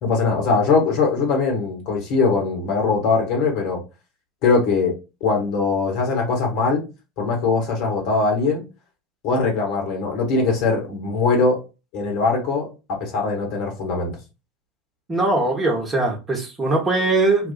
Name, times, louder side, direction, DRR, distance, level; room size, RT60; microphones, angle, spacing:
voice 1, 0.0-3.8 4.4-4.9 5.2-6.8 7.2-8.6 9.2-11.6 11.9-14.1, left 4 dB, 50° left, 1.2 m, -21 dB
voice 2, 15.1-17.5, right 2 dB, 20° right, 1.1 m, -21 dB
2.4 x 2.3 x 4.0 m
figure-of-eight pair, 80°, 0 cm